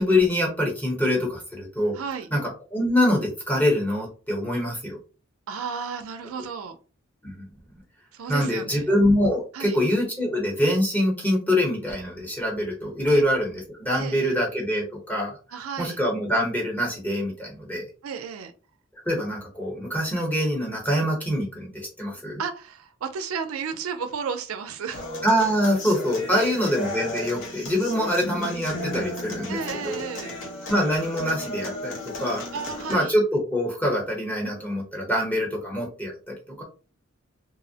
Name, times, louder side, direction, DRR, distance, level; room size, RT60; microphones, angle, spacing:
voice 1, 0.0-1.9 2.3-5.0 7.2-7.5 8.3-17.8 19.0-22.4 25.2-30.0 30.7-32.4 32.9-36.6, left 1 dB, 10° left, 0.8 m, -25 dB
voice 2, 1.9-2.3 5.5-6.8 8.1-8.9 9.5-9.8 13.1-13.2 13.9-14.4 15.5-16.0 18.0-18.5 22.4-25.0 26.3-26.7 27.9-28.1 29.5-30.3 32.5-33.1, right 6 dB, 85° right, 0.4 m, -33 dB
Human voice / Acoustic guitar, 24.9-32.9, left 1 dB, 65° left, 0.8 m, -35 dB
2.5 x 2.0 x 2.7 m
head